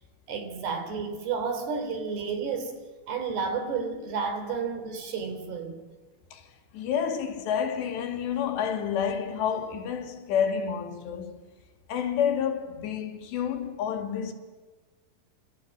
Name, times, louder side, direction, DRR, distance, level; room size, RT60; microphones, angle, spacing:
voice 1, 0.3-2.8 3.1-5.8, right 5 dB, 75° right, 5.5 m, -31 dB
voice 2, 6.7-11.4 11.9-14.3, left 8 dB, 85° left, 4.7 m, -29 dB
28.0 x 24.5 x 8.8 m
omnidirectional pair, 4.9 m